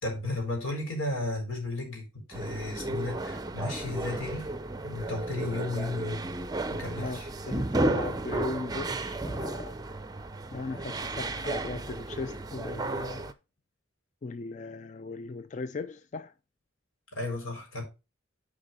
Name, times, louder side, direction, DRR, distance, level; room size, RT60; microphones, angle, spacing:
voice 1, 0.0-4.5 4.8-6.4 6.7-7.3 17.1-17.8, left 2 dB, 85° left, 4.3 m, -34 dB
sound 1, 2.3-13.3, right 2 dB, 20° right, 0.5 m, -33 dB
voice 2, 7.0-9.8 10.5-13.3 14.2-16.3, left 3 dB, 35° left, 0.4 m, -38 dB
10.0 x 5.1 x 4.1 m
head